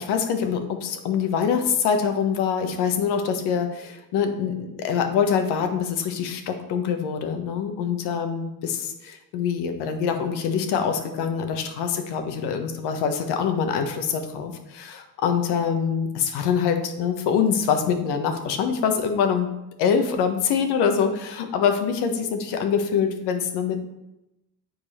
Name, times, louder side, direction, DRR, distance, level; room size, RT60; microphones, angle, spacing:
voice 1, 0.0-19.5 19.8-23.8, left 7 dB, 70° left, 6 dB, 1.2 m, -24 dB
7.7 x 4.8 x 4.3 m, 0.91 s
hypercardioid pair, 70°, 41 cm